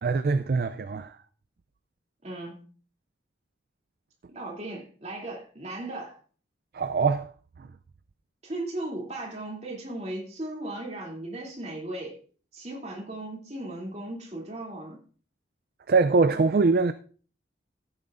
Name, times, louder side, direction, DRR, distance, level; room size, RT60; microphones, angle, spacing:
voice 1, 0.0-1.1 6.7-7.3 15.9-16.9, right 4 dB, 50° right, 0.4 m, -23 dB
voice 2, 2.2-2.7 4.3-6.2 8.4-12.2 12.5-15.0, right 2 dB, 35° right, 2.8 m, -37 dB
14.5 x 8.9 x 2.5 m
head